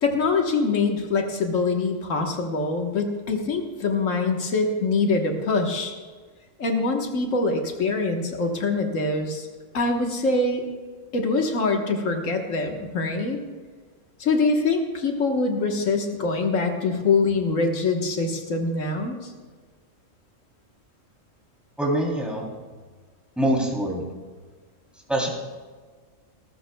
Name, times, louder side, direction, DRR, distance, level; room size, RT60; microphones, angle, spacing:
voice 1, 0.0-5.9 6.6-9.5 9.7-10.6 11.1-13.4 14.2-19.3, left 3 dB, 80° left, 3 dB, 1.7 m, -24 dB
voice 2, 21.8-22.5 23.4-24.0 25.1-25.3, right 1 dB, ahead, -3 dB, 3.0 m, -24 dB
19.0 x 12.5 x 2.3 m, 1.5 s
omnidirectional pair, 1.3 m